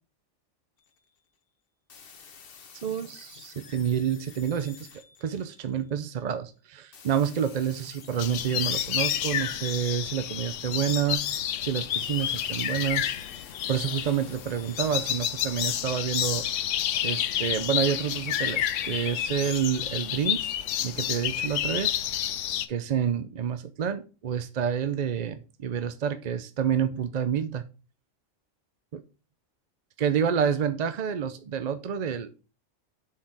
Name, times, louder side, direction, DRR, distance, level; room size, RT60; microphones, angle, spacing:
sound 1, 0.8-1.2 1.9-6.1 6.9-11.1 11.9-15.1, left 6 dB, 50° left, 1.0 m, -51 dB
voice 1, 2.8-4.9 5.2-11.2 11.6-13.2 13.7-16.5 17.0-22.1 22.7-27.6 28.9-29.0 30.0-32.4, right 8 dB, 50° right, 11 dB, 0.5 m, -28 dB
sound 2, 8.2-22.7, left 11 dB, 75° left, 1.0 m, -30 dB
7.2 x 4.7 x 4.7 m, 0.33 s
omnidirectional pair, 1.3 m